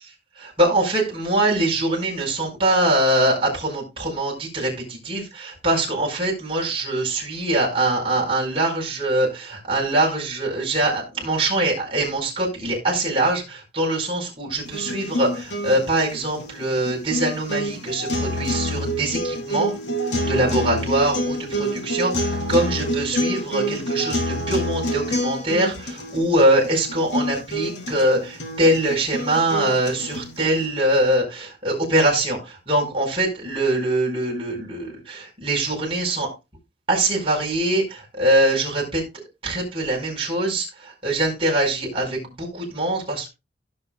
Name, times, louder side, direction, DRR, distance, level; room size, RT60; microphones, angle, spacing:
voice 1, 0.4-19.7 20.0-36.3 36.9-39.0 39.4-43.3, right 1 dB, 30° right, -2 dB, 4.8 m, -23 dB
sound 1, 14.6-30.7, equal, 80° left, 3.6 m, -27 dB
16.5 x 6.8 x 2.3 m, 0.24 s
head